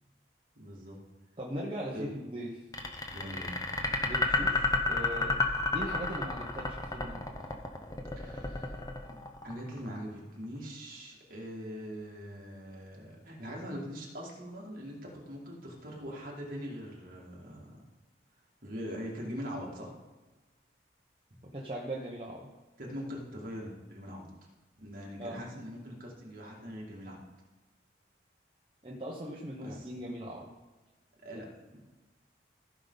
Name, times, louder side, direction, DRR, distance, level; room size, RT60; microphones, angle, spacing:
voice 1, 0.5-1.0 1.9-2.1 3.1-3.7 8.2-8.8 9.1-9.2 9.4-17.8 18.6-20.0 22.8-24.3 24.8-27.2 29.6-29.9 31.2-31.8, equal, 50° right, -3 dB, 2.4 m, -42 dB
voice 2, 1.4-2.5 4.0-5.4 5.7-7.4 21.5-22.5 25.2-25.4 28.8-30.5, right 1 dB, 30° right, -4 dB, 1.0 m, -39 dB
sound 1, 2.7-9.9, left 3 dB, 20° left, 0.8 m, -30 dB
15.0 x 5.5 x 4.0 m, 1.2 s
head